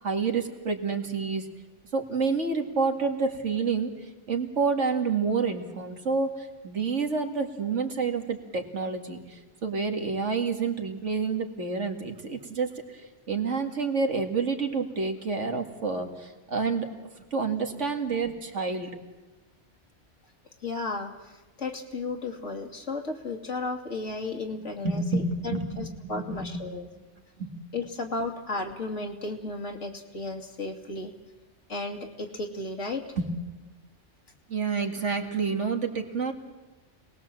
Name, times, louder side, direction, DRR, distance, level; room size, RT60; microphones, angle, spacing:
voice 1, 0.0-1.5 1.9-3.9 4.3-12.8 13.3-16.9 17.3-19.0 24.8-26.6 27.0-27.1 27.4-27.5 33.2-33.3 34.5-36.3, right 4 dB, 75° right, 4 dB, 2.4 m, -28 dB
voice 2, 20.6-26.9 27.7-31.1 31.7-33.0, left 3 dB, 80° left, 2 dB, 2.8 m, -34 dB
27.0 x 20.0 x 7.6 m, 1.2 s
omnidirectional pair, 1.2 m